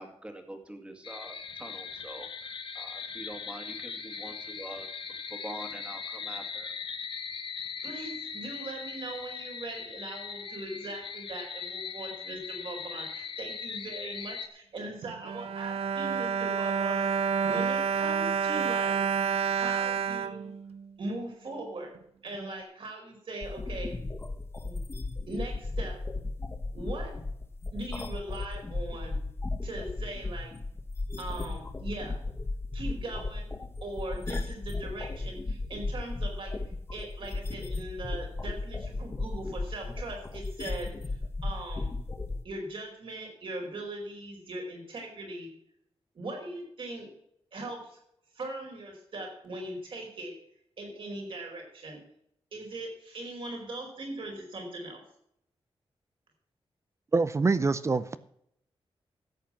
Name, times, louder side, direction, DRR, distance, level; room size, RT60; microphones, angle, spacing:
voice 1, 0.0-4.9 5.4-6.7, right 1 dB, 10° right, 5 dB, 2.1 m, -45 dB
sound 1, 1.0-14.5, left 6 dB, 55° left, 1.2 m, -40 dB
voice 2, 7.8-20.5 21.0-21.9 22.2-23.9 24.6-24.8 25.3-26.0 26.7-27.1 27.7-29.2 29.6-30.5 31.2-32.2 32.7-33.5 33.8-36.5 36.9-41.2 41.4-41.9 42.4-45.5 46.1-47.1 47.5-48.0 48.3-50.3 50.8-52.0 52.5-55.0, right 2 dB, 60° right, 1 dB, 4.6 m, -40 dB
Bowed string instrument, 15.0-21.3 21.9-22.0 22.3-22.5, right 6 dB, 90° right, 0.7 m, -29 dB
sound 2, 23.4-42.4, left 2 dB, 25° left, 1.3 m, -35 dB
voice 3, 57.1-58.2, right 3 dB, 30° right, 14 dB, 0.5 m, -25 dB
13.0 x 8.3 x 5.8 m, 0.72 s
wide cardioid pair, 145°, 10 cm